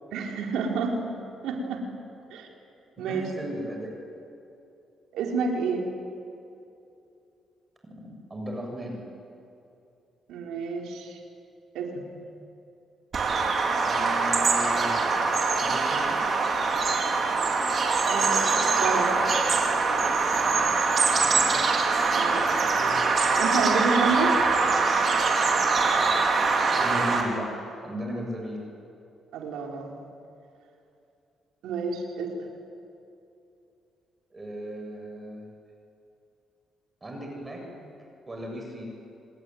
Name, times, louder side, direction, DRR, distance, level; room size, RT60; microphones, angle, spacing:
voice 1, 0.1-1.0 1.4-1.9 2.3-2.5 3.0-3.2 5.1-5.9 10.3-11.2 11.7-12.1 18.1-19.1 22.2-22.5 23.4-24.4 26.4-26.5 29.3-30.0 31.6-32.5, right 4 dB, 85° right, 1 dB, 4.5 m, -29 dB
voice 2, 3.0-3.9 8.3-9.1 13.8-16.2 21.2-21.5 22.7-23.1 26.6-27.5 27.8-28.6 34.3-35.5 37.0-37.9 38.3-38.9, equal, 25° right, 1 dB, 7.5 m, -36 dB
Bird vocalization bird call bird song, 13.1-27.2, right 4 dB, 50° right, 4.9 m, -23 dB
29.0 x 20.5 x 9.6 m, 2.7 s
cardioid pair, 90°, 0 cm